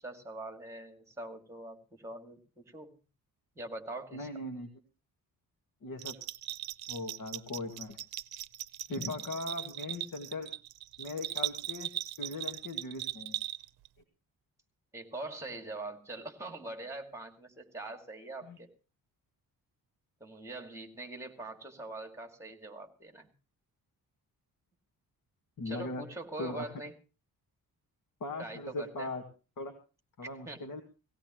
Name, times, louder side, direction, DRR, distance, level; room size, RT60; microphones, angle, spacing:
voice 1, 0.0-3.0 3.6-4.3 14.9-18.7 20.2-23.3 25.6-26.9 28.4-29.1 30.4-30.7, right 2 dB, 10° right, 4 dB, 2.5 m, -43 dB
voice 2, 4.1-4.7 5.8-6.2 6.9-8.0 8.9-10.5 11.0-13.3 18.4-18.6 25.6-26.0 26.4-26.7 28.2-29.2 29.6-29.7 30.2-30.8, left 2 dB, 60° left, 4 dB, 2.3 m, -39 dB
Bell, 6.0-13.9, right 14 dB, 85° right, 0.7 m, -39 dB
18.5 x 17.5 x 3.1 m, 0.32 s
cardioid pair, 125°, 36 cm